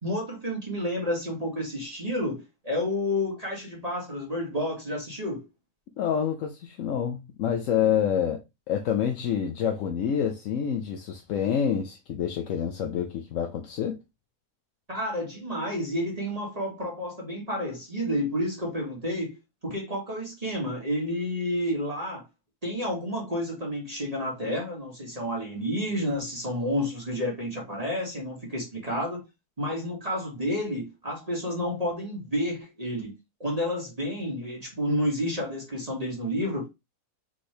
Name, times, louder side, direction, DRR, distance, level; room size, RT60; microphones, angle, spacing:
voice 1, 0.0-5.4 14.9-19.3 19.6-22.2 22.6-29.2 29.6-33.1 33.4-36.7, equal, 25° right, 1.4 m, -30 dB
voice 2, 6.0-8.4 8.7-14.0, left 8 dB, 65° left, 0.9 m, -27 dB
4.4 x 3.7 x 3.3 m
omnidirectional pair, 1.7 m